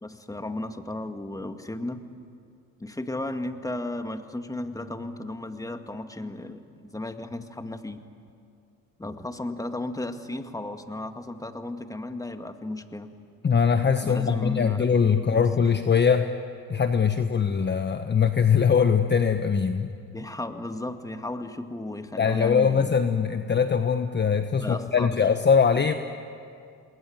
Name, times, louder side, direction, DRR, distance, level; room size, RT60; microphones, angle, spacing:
voice 1, 0.0-2.1 2.8-8.0 9.0-13.1 14.0-14.9 15.1-15.4 20.1-23.0 24.6-25.1, left 2 dB, 10° left, 7 dB, 2.0 m, -34 dB
voice 2, 13.4-16.3 16.7-19.9 22.2-25.9, left 6 dB, 25° left, 8 dB, 1.2 m, -22 dB
28.0 x 21.0 x 9.5 m, 2.4 s
supercardioid pair, 75°, 39 cm